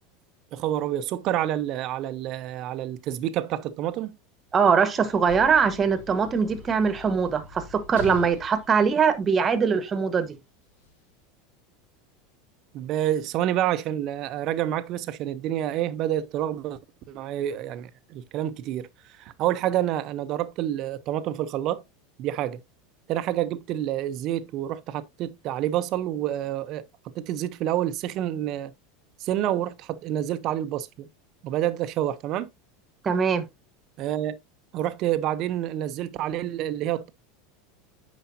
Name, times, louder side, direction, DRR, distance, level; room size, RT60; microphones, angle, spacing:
voice 1, 0.5-4.2 12.7-16.8 17.1-18.9 19.2-21.8 22.2-22.6 23.1-26.9 27.1-28.7 29.2-31.1 31.4-32.5 34.0-34.4 34.7-37.1, right 12 dB, 50° right, 0.8 m, -28 dB
Sliding door / Slam, 4.5-9.9 10.8-10.9, left 4 dB, 85° left, 2.1 m, -43 dB
voice 2, 4.5-10.4 33.0-33.5, right 6 dB, 25° right, 1.3 m, -22 dB
9.1 x 5.1 x 2.7 m
supercardioid pair, 110°, 0 cm